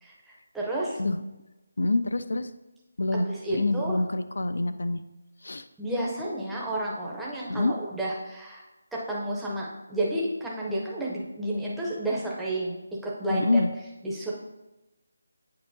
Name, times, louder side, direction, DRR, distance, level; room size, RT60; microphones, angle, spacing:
voice 1, 0.0-1.0 3.1-4.0 5.8-8.6 8.9-12.8 13.0-13.6 14.0-14.3, right 1 dB, ahead, -5 dB, 0.6 m, -31 dB
voice 2, 1.8-2.5 3.0-5.0 5.4-5.7 7.5-7.7 13.3-13.7, left 2 dB, 70° left, 11 dB, 0.4 m, -26 dB
9.3 x 4.5 x 2.7 m, 1.0 s
figure-of-eight pair, 175°, 0 cm